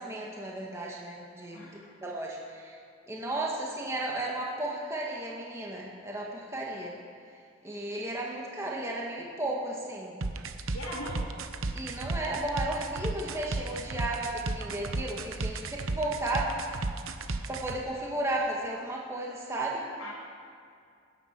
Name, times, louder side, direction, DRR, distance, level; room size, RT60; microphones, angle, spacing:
voice 1, 0.0-2.8 3.1-6.9 7.6-10.1 11.7-16.8 17.5-19.9, right 1 dB, 15° right, -3 dB, 1.6 m, -34 dB
voice 2, 1.5-2.0 10.7-11.3 20.0-20.1, left 1 dB, 75° left, -6 dB, 2.5 m, -40 dB
sound 1, 10.2-17.8, right 3 dB, 75° right, 0.9 m, -33 dB
20.0 x 9.7 x 5.9 m, 2.3 s
head